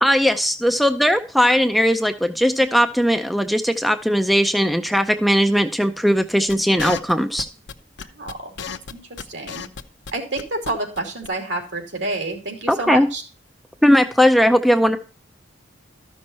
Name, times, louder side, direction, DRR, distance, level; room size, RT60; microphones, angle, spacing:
voice 1, 0.0-7.5 12.7-13.1 13.8-15.0, equal, ahead, 7 dB, 0.5 m, -18 dB
sound 1, 6.5-10.7 11.0-11.1 11.2-11.3, left 6 dB, 65° left, 0.7 m, -32 dB
voice 2, 8.0-9.6 10.1-13.2, right 2 dB, 70° right, 3 dB, 2.9 m, -29 dB
13.0 x 6.2 x 4.2 m, 0.36 s
head